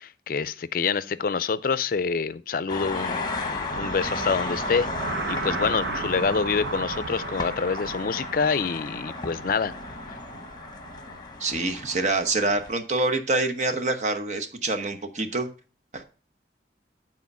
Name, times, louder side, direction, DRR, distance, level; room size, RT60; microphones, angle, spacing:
voice 1, 0.0-9.7, left 5 dB, 55° left, 0.5 m, -27 dB
sound 1, 2.7-12.7, left 3 dB, 25° left, 1.1 m, -35 dB
sound 2, 3.7-11.2, right 3 dB, 80° right, 1.1 m, -34 dB
voice 2, 11.4-15.5 15.9-16.0, right 2 dB, 40° right, 1.0 m, -26 dB
8.5 x 4.4 x 5.4 m
head